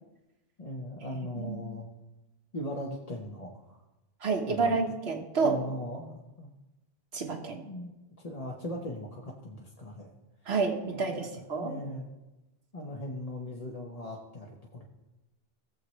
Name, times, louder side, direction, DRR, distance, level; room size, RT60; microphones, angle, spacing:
voice 1, 0.6-1.9 2.5-3.8 4.5-4.8 5.4-6.5 7.6-7.9 8.2-10.1 10.9-11.3 11.6-12.1 12.7-14.8, left 1 dB, 35° left, -1 dB, 1.1 m, -39 dB
voice 2, 4.2-5.6 7.1-7.6 10.5-11.7, right 4 dB, 80° right, 3 dB, 1.6 m, -29 dB
17.5 x 7.5 x 3.2 m, 1.0 s
omnidirectional pair, 1.1 m